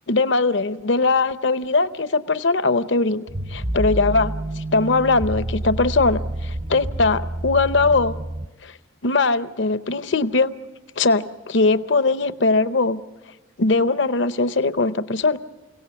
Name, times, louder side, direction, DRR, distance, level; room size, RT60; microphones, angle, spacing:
voice 1, 0.1-3.2 3.5-8.2 8.6-8.7 9.0-10.5 11.0-13.0 13.6-15.4, left 3 dB, 60° left, 12 dB, 0.7 m, -20 dB
sound 1, 3.3-8.5, right 1 dB, 30° right, 0.6 m, -28 dB
29.5 x 17.5 x 7.0 m, 1.2 s
head